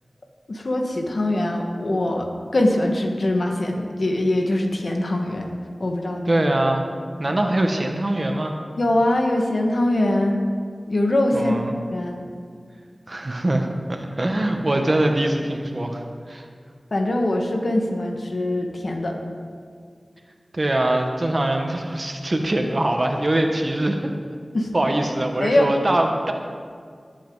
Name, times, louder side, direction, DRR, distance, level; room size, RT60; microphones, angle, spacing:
voice 1, 0.5-2.3 2.5-5.5 5.8-6.4 7.3-7.4 8.8-10.4 10.9-11.6 11.9-12.2 16.9-19.2 24.5-24.7 25.4-25.7, left 1 dB, 70° left, 2 dB, 1.7 m, -22 dB
voice 2, 6.3-6.9 7.2-8.5 11.3-11.6 13.1-16.5 20.5-24.2 24.7-26.3, right 1 dB, 50° right, 3 dB, 1.3 m, -23 dB
19.5 x 8.5 x 4.0 m, 2.1 s
cardioid pair, 40°, 0 cm